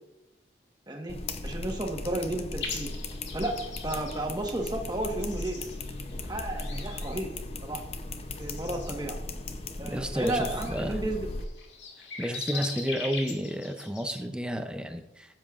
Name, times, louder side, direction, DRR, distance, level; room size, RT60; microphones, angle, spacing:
voice 1, 0.9-1.2 1.4-2.9 3.3-5.7 6.3-7.3 7.6-7.8 8.4-9.2 9.8-11.3 12.5-12.7, right 1 dB, 25° right, 2 dB, 1.3 m, -33 dB
sound 1, 1.1-11.4, left 2 dB, 35° left, 0.6 m, -37 dB
sound 2, 2.6-14.2, left 4 dB, 90° left, 1.9 m, -42 dB
voice 2, 9.8-11.0 12.2-15.4, equal, 5° right, 7 dB, 0.5 m, -31 dB
15.0 x 7.6 x 2.5 m, 0.97 s
head